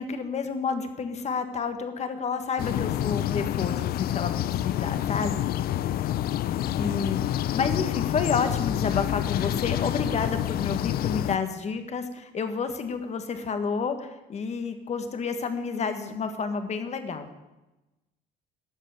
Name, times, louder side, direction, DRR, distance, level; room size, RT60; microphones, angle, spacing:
voice 1, 0.0-5.5 6.8-17.3, left 5 dB, 40° left, 8 dB, 1.7 m, -30 dB
sound 1, 2.6-11.4, left 12 dB, 65° left, 0.6 m, -28 dB
12.5 x 7.4 x 9.4 m, 1.0 s
cardioid pair, 110°, 17 cm